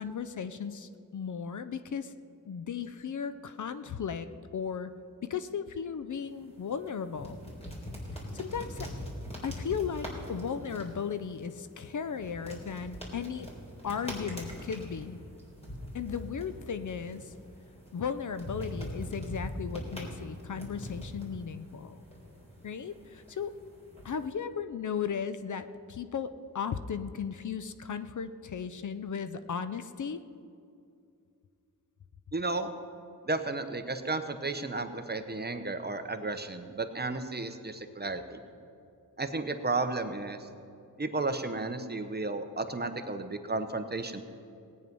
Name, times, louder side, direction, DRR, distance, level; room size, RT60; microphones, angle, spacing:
voice 1, 0.0-2.1 2.5-4.9 5.3-7.4 8.3-8.9 9.4-13.5 13.8-15.2 15.9-17.3 17.9-22.0 22.6-23.5 24.0-30.2, left 6 dB, 55° left, 12 dB, 0.6 m, -36 dB
sound 1, 6.1-24.3, equal, 15° left, 3.6 m, -43 dB
voice 2, 32.3-32.7 33.2-38.4 39.2-40.5 41.0-44.2, right 3 dB, 25° right, 8 dB, 1.0 m, -33 dB
17.5 x 9.4 x 5.4 m, 2.5 s
cardioid pair, 70°, 36 cm